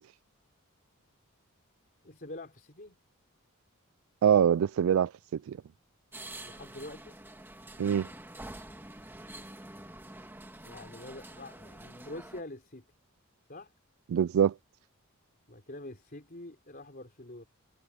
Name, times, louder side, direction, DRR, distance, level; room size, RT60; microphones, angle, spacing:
voice 1, 2.0-3.0 6.4-7.2 10.7-12.8 13.5-13.7 15.5-17.5, left 2 dB, 40° left, 3.8 m, -45 dB
voice 2, 4.2-5.6 7.8-8.1 14.1-14.5, right 8 dB, 70° right, 0.3 m, -24 dB
sound 1, 6.1-12.4, right 1 dB, 10° right, 1.7 m, -47 dB
head